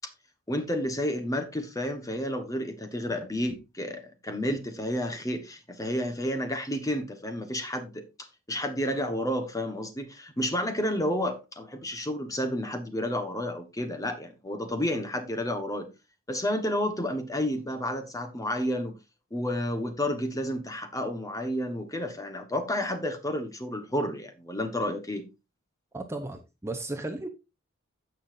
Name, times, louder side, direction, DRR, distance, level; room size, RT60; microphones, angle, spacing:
voice 1, 0.5-8.0 8.5-15.9 16.3-18.9 19.3-25.3, left 1 dB, 15° left, 1.3 m, -31 dB
voice 2, 25.9-27.3, right 2 dB, 15° right, 0.9 m, -35 dB
16.0 x 5.7 x 2.7 m
head